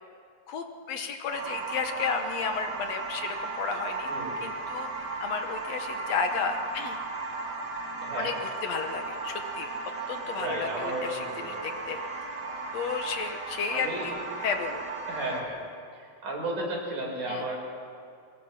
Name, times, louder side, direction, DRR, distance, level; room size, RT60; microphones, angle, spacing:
voice 1, 0.5-4.1 4.4-7.0 8.2-9.7 10.1-12.0 12.7-14.1 14.4-14.8 17.3-17.4, left 5 dB, 65° left, 6 dB, 2.1 m, -33 dB
sound 1, 1.3-15.4, right 3 dB, 40° right, 2.1 m, -36 dB
voice 2, 4.1-4.4 8.0-8.3 10.4-11.7 13.7-14.2 15.1-15.6 15.9-17.6, right 1 dB, 90° right, -2 dB, 6.8 m, -34 dB
22.5 x 21.5 x 5.9 m, 2.4 s
omnidirectional pair, 3.6 m